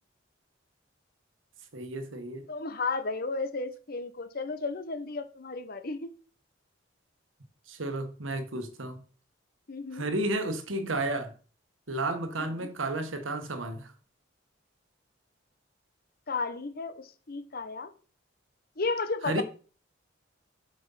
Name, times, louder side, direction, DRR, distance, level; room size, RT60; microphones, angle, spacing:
voice 1, 1.7-2.5 7.7-9.0 9.9-11.3 11.9-13.9 19.2-19.4, right 2 dB, 85° right, 1.3 m, -32 dB
voice 2, 2.5-6.1 9.7-10.0 12.6-12.7 16.3-17.9 18.8-19.4, left 3 dB, 50° left, 1.0 m, -33 dB
7.7 x 5.2 x 5.6 m
head